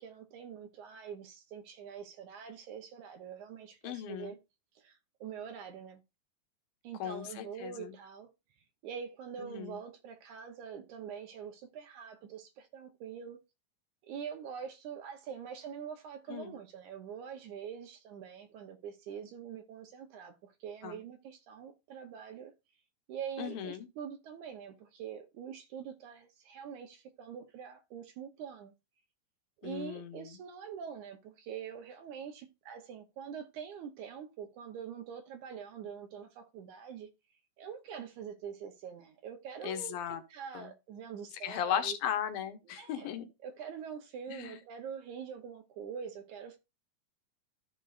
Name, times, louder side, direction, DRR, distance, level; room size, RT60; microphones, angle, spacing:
voice 1, 0.0-4.4 4.8-6.0 6.8-8.3 8.8-13.4 14.0-22.5 23.1-28.7 29.6-37.1 37.6-40.0 40.3-42.0 42.7-43.1 43.4-46.6, right 7 dB, 70° right, 2.0 m, -44 dB
voice 2, 3.8-4.4 7.0-7.9 9.4-9.8 16.3-16.5 20.8-21.0 23.4-23.9 29.6-30.4 39.6-40.2 40.5-40.7 41.4-43.3 44.3-44.6, left 9 dB, 80° left, 2.8 m, -37 dB
14.0 x 5.3 x 2.5 m
omnidirectional pair, 4.2 m